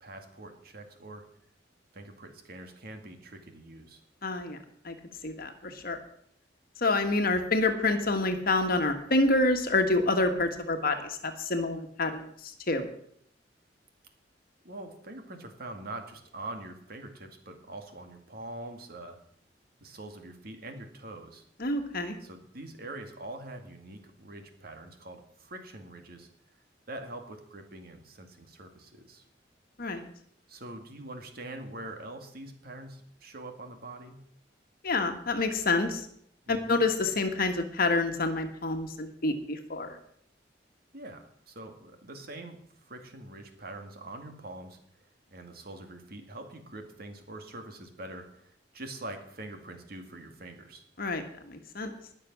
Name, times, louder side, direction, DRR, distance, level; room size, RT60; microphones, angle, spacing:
voice 1, 0.0-1.2 1.9-4.0 14.6-19.2 19.8-21.4 22.2-26.3 26.9-29.2 30.5-34.2 36.5-36.8 40.9-42.6 42.8-44.8 45.3-50.8, right 2 dB, 55° right, 5 dB, 2.2 m, -44 dB
voice 2, 4.2-4.6 4.8-5.0 5.2-6.0 6.8-12.9 21.6-22.2 29.8-30.1 34.8-36.1 36.5-40.0 51.0-51.9, left 2 dB, 55° left, 6 dB, 1.6 m, -28 dB
20.0 x 6.8 x 6.1 m, 0.68 s
head